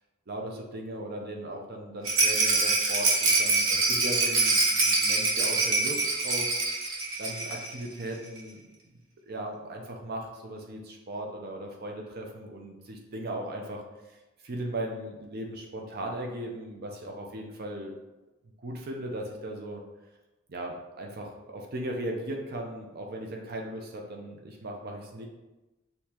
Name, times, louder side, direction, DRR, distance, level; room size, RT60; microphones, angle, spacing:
voice 1, 0.3-6.6 7.2-8.6 9.3-13.8 14.1-14.2 14.4-17.9 18.6-19.8 20.5-25.3, right 1 dB, 50° right, 1 dB, 0.6 m, -37 dB
Rattle, 2.0-7.7 8.0-8.1 8.4-8.5, right 3 dB, 80° right, 1.1 m, -25 dB
6.5 x 2.8 x 2.8 m, 1.1 s
head